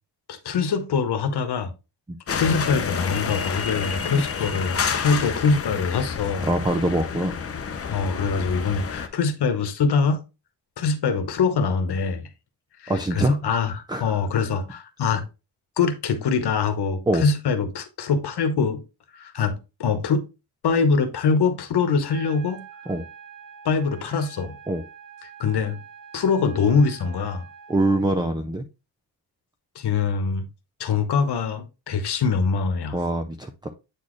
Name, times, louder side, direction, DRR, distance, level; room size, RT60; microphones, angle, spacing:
voice 1, 0.3-1.7 2.3-6.5 7.9-10.2 10.8-12.3 12.8-15.2 15.8-18.8 19.1-20.2 20.6-22.6 23.6-24.5 25.4-25.8 26.1-27.4 29.7-30.4 30.8-33.0, left 5 dB, 65° left, 1.1 m, -23 dB
sound 1, 2.3-9.1, left 6 dB, 35° left, 0.6 m, -29 dB
voice 2, 6.4-7.3 12.9-13.4 13.9-14.0 17.1-17.2 22.9-23.1 24.7-24.8 27.7-28.6 32.9-33.7, right 1 dB, 10° right, 0.4 m, -23 dB
sound 2, 22.1-28.1, right 8 dB, 85° right, 1.6 m, -45 dB
8.5 x 4.2 x 3.1 m
wide cardioid pair, 175°, 42 cm